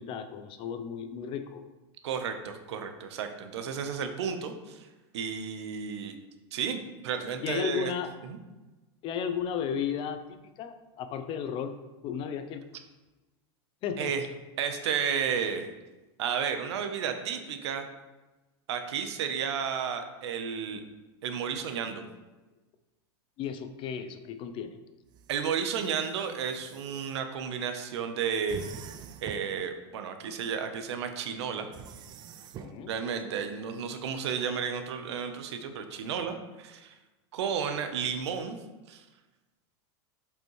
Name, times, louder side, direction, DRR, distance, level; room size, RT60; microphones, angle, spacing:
voice 1, 0.0-1.6 7.4-8.1 9.0-11.8 12.0-12.6 13.8-14.1 23.4-24.8 32.6-32.9, left 7 dB, 40° left, 9 dB, 0.6 m, -34 dB
voice 2, 2.0-4.9 5.1-6.2 6.5-7.9 8.3-8.4 14.0-14.2 14.6-15.7 16.2-17.9 18.7-20.8 21.2-22.0 25.3-28.6 29.2-31.7 32.9-36.9 37.3-38.6 38.9-39.0, right 7 dB, 85° right, 7 dB, 0.9 m, -32 dB
sound 1, 25.1-27.2 28.5-29.6 31.7-32.8, right 7 dB, 30° right, 0.4 m, -46 dB
7.3 x 5.4 x 3.2 m, 1.1 s
supercardioid pair, 140°, 14 cm